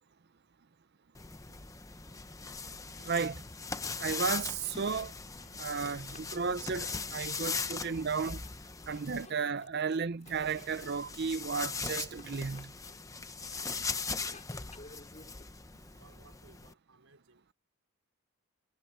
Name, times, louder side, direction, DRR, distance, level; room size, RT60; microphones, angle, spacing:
sound 1, 1.1-9.3 10.3-16.7, left 4 dB, 15° left, 0.9 m, -40 dB
voice 1, 3.0-3.4 4.0-5.1 5.6-6.8 7.1-8.4 8.9-12.7, right 5 dB, 50° right, 0.6 m, -33 dB
sound 2, 3.9-4.3 4.6-5.9 6.1-13.8 14.1-15.4, left 3 dB, 35° left, 6.7 m, -58 dB
voice 2, 6.2-6.6 8.6-8.8 12.7-12.8 13.5-14.0 15.8-17.5, right 4 dB, 85° right, 4.8 m, -63 dB
head